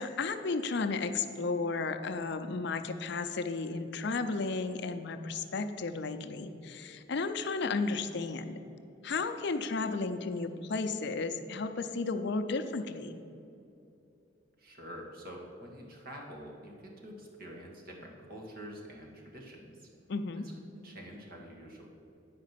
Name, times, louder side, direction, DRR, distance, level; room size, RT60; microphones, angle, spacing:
voice 1, 0.0-8.6 9.0-13.2 20.1-20.4, left 3 dB, 65° left, 8 dB, 0.6 m, -33 dB
voice 2, 14.6-19.9 20.3-21.9, equal, 55° right, 0 dB, 1.7 m, -47 dB
9.6 x 5.0 x 7.4 m, 2.7 s
head